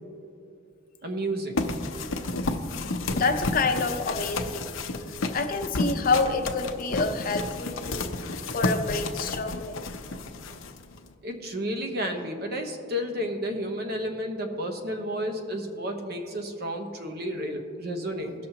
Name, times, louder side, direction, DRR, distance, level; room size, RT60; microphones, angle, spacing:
voice 1, 1.0-1.7 11.2-18.3, equal, 50° right, 4 dB, 1.0 m, -31 dB
sound 1, 1.6-11.1, left 3 dB, 90° left, 0.7 m, -31 dB
voice 2, 3.0-4.7 5.3-9.8, left 3 dB, 45° left, 6 dB, 0.6 m, -28 dB
17.0 x 6.3 x 2.9 m, 2.5 s
head